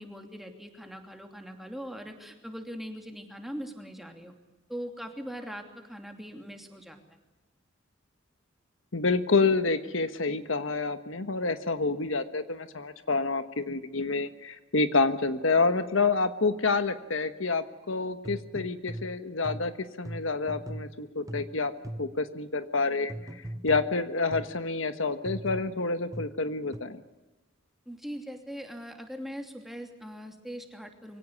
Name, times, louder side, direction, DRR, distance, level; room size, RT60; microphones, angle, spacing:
voice 1, 0.0-4.3 4.7-7.0 27.9-31.2, equal, ahead, 4 dB, 2.8 m, -41 dB
voice 2, 8.9-19.7 20.0-21.7 22.0-27.0, left 3 dB, 80° left, 10 dB, 1.3 m, -28 dB
sound 1, 18.2-22.3 23.1-24.7 25.3-26.8, right 1 dB, 15° right, 0.9 m, -40 dB
23.5 x 17.5 x 9.6 m, 1.1 s
head